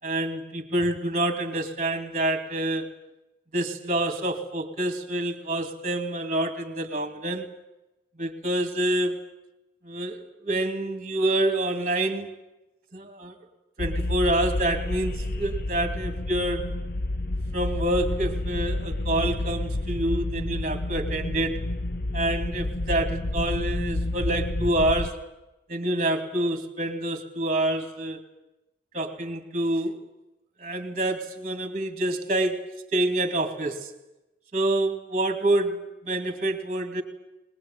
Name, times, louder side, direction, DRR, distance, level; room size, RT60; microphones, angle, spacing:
voice 1, 0.0-2.9 3.5-7.5 8.2-9.2 9.8-12.3 12.9-13.3 13.8-16.7 17.5-21.6 22.1-25.2 25.7-28.2 28.9-30.1 30.6-32.7 32.9-33.9 34.5-37.0, right 1 dB, 35° right, 7 dB, 2.5 m, -27 dB
sound 1, 13.8-25.1, left 1 dB, 50° left, 1.0 m, -29 dB
21.5 x 21.0 x 9.4 m, 0.96 s
head